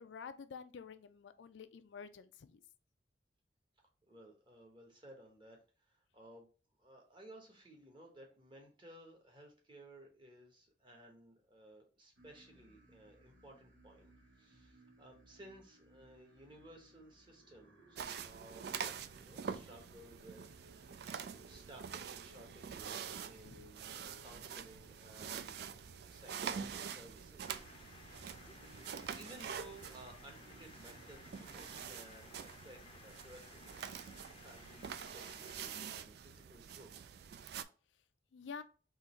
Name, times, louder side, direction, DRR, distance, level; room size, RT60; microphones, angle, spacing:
voice 1, 0.0-2.6 23.4-23.7 38.3-38.6, left 6 dB, 80° left, 0.4 m, -49 dB
voice 2, 4.0-6.5 6.8-14.1 14.4-20.4 20.7-25.6 26.1-36.9, right 1 dB, 25° right, 1.1 m, -58 dB
sound 1, 12.2-31.9, right 1 dB, 90° right, 1.0 m, -63 dB
sound 2, 18.0-37.6, right 7 dB, 60° right, 0.3 m, -46 dB
sound 3, 27.4-35.8, left 3 dB, 30° left, 0.5 m, -58 dB
3.8 x 2.9 x 4.2 m
head